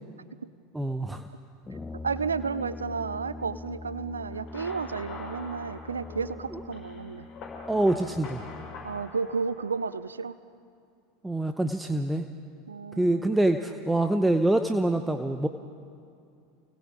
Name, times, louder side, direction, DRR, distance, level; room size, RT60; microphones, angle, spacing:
voice 1, 0.7-1.2 7.7-8.4 11.2-12.3 13.0-15.5, right 1 dB, 5° right, 7 dB, 0.8 m, -25 dB
Brass instrument, 1.6-9.1, left 3 dB, 20° left, 0.9 m, -43 dB
voice 2, 2.0-7.3 8.8-10.4 12.7-13.4, right 5 dB, 85° right, 15 dB, 0.5 m, -32 dB
sound 1, 4.3-10.1, left 4 dB, 45° left, 5.7 m, -45 dB
28.5 x 19.5 x 4.9 m, 2.4 s
figure-of-eight pair, 80°, 0 cm